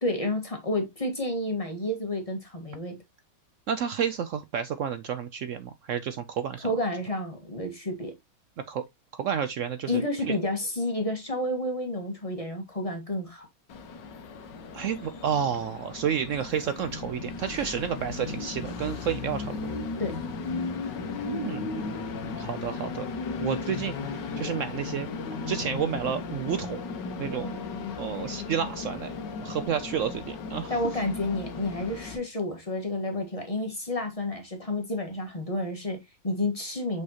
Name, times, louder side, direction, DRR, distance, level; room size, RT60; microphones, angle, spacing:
voice 1, 0.0-3.0 6.6-8.1 9.9-13.5 20.0-20.2 30.7-37.0, left 1 dB, 20° left, 1.6 m, -30 dB
voice 2, 3.7-6.7 8.7-8.8 9.1-10.4 14.7-19.7 21.2-22.0 22.4-23.1 23.4-25.1 25.4-26.8 27.2-27.5 28.0-29.1 29.4-30.7, right 8 dB, 90° right, 0.6 m, -31 dB
Train, 13.7-32.2, left 4 dB, 70° left, 1.7 m, -35 dB
6.3 x 5.4 x 2.9 m
omnidirectional pair, 2.0 m